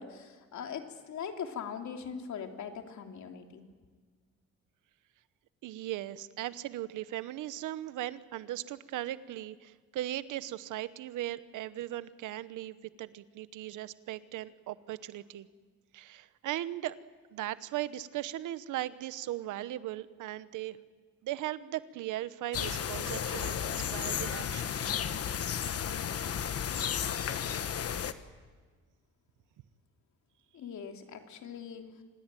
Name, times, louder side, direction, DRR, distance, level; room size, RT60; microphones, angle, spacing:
voice 1, 0.0-3.6 30.5-31.9, left 7 dB, 70° left, 4 dB, 3.1 m, -41 dB
voice 2, 5.6-15.5 15.9-17.0 17.3-20.8 21.2-24.7, right 14 dB, 85° right, 15 dB, 1.0 m, -38 dB
sound 1, 22.5-28.1, left 8 dB, 50° left, 1.3 m, -33 dB
26.0 x 19.5 x 9.1 m, 1.5 s
cardioid pair, 90°, 30 cm